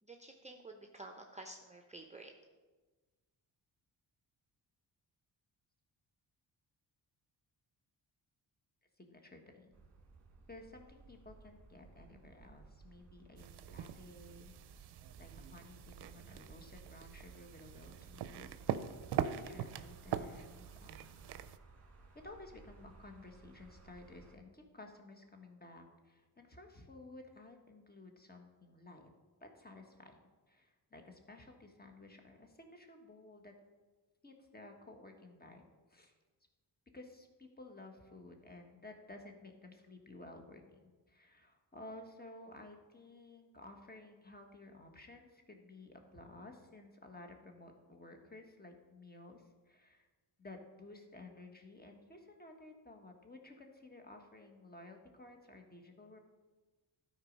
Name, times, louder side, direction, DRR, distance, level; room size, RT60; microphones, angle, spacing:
voice 1, 0.0-2.3, right 2 dB, 15° right, 3 dB, 0.7 m, -51 dB
voice 2, 9.0-9.7 10.5-14.5 15.2-18.5 19.1-21.4 22.2-29.1 29.4-30.2 30.5-33.5 34.2-36.1 36.9-50.1 50.4-56.2, left 2 dB, 20° left, 4 dB, 1.4 m, -54 dB
sound 1, 9.7-24.4, right 3 dB, 35° right, 1.7 m, -60 dB
sound 2, 13.4-21.6, right 9 dB, 65° right, 0.6 m, -42 dB
11.5 x 4.6 x 5.3 m, 1.3 s
cardioid pair, 80°, 43 cm